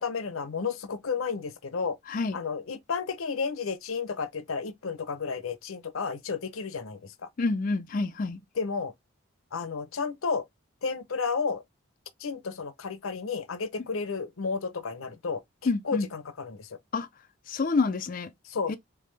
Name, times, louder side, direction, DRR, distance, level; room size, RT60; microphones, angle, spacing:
voice 1, 0.0-2.0 2.3-7.1 8.5-8.9 9.5-10.4 10.8-11.6 12.2-16.7 18.4-18.8, left 5 dB, 90° left, 0.7 m, -32 dB
voice 2, 7.4-8.4 15.7-16.1 16.9-17.1 17.5-18.3 18.7-18.8, left 3 dB, 40° left, 0.4 m, -27 dB
3.7 x 3.4 x 3.2 m
head